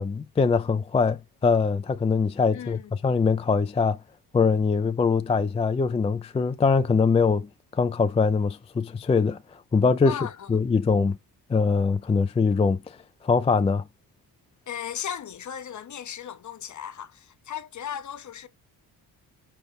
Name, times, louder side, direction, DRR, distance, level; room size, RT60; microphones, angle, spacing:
voice 1, 0.0-4.0 4.3-10.2 10.5-11.2 11.5-13.0 13.2-13.8, left 5 dB, 15° left, 0.4 m, -23 dB
voice 2, 2.5-2.9 10.1-10.6 14.7-18.5, left 9 dB, 50° left, 0.7 m, -36 dB
5.5 x 2.1 x 3.3 m
cardioid pair, 70°, 39 cm